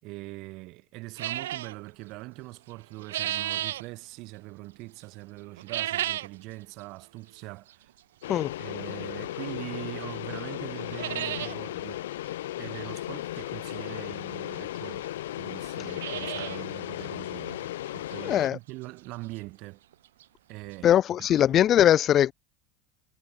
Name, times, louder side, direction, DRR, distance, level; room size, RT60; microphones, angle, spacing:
voice 1, 0.0-7.9 8.6-12.0 12.6-17.7 17.9-19.8 20.5-20.9 21.2-21.6, right 22 dB, 60° right, 4.9 m, -42 dB
sound 1, 1.2-1.7 2.7-3.8 5.6-6.4 6.8-6.9 7.7-7.8 9.5-9.6 10.0-10.1 10.4-10.5 10.8-11.6 11.9-12.0 12.2-12.3 13.9-14.0 14.7-14.8 15.0-15.1 15.6-16.7 17.0-17.1 17.6-17.7 18.1-18.2 19.9-20.0 20.2-20.3 20.7-20.8, right 13 dB, 80° right, 3.8 m, -33 dB
sound 2, 8.2-18.5, left 14 dB, 80° left, 2.4 m, -36 dB
voice 2, 18.2-18.6 20.8-22.3, left 11 dB, 45° left, 0.8 m, -21 dB
hypercardioid pair, 90°, 0 cm